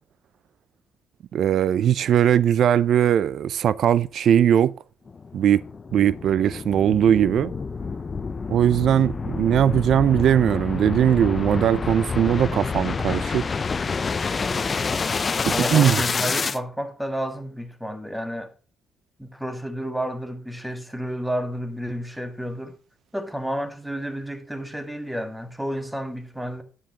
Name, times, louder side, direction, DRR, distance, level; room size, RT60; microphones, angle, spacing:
voice 1, 1.3-4.7 5.3-5.6 5.9-7.5 8.5-13.5 15.5-16.0, right 9 dB, 65° right, 0.4 m, -20 dB
sound 1, 5.1-16.6, left 4 dB, 35° left, 0.6 m, -28 dB
voice 2, 15.5-18.5 19.2-22.7 23.1-26.6, equal, 5° right, 1.6 m, -31 dB
9.9 x 9.7 x 2.9 m
cardioid pair, 90°, 0 cm